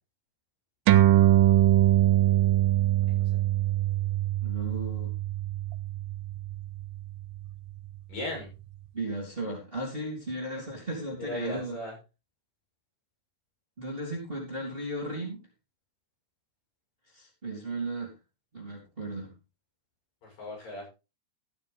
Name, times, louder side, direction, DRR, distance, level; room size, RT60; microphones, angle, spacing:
sound 1, 0.9-7.7, right 14 dB, 85° right, 2.5 m, -23 dB
voice 1, 4.4-5.1 8.9-11.8 13.8-15.4 17.1-18.1 18.5-19.3, right 2 dB, 15° right, -3 dB, 3.2 m, -35 dB
voice 2, 8.1-8.5 11.2-11.9 20.2-20.9, left 2 dB, 80° left, -3 dB, 9.3 m, -36 dB
14.5 x 9.7 x 3.5 m, 0.29 s
omnidirectional pair, 4.0 m